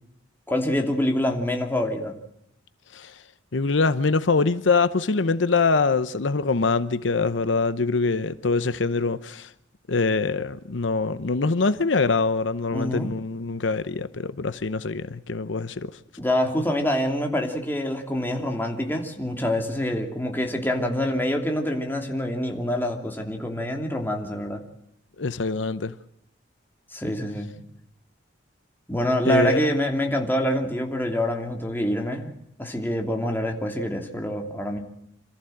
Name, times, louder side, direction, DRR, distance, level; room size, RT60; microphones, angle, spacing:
voice 1, 0.5-2.1 12.7-13.1 16.2-24.6 26.9-27.6 28.9-32.3 32.6-34.8, equal, 10° left, 2.9 m, -26 dB
voice 2, 3.5-9.5 9.9-16.0 25.2-25.9 29.2-29.7, left 4 dB, 80° left, 0.8 m, -24 dB
27.0 x 14.5 x 7.9 m
head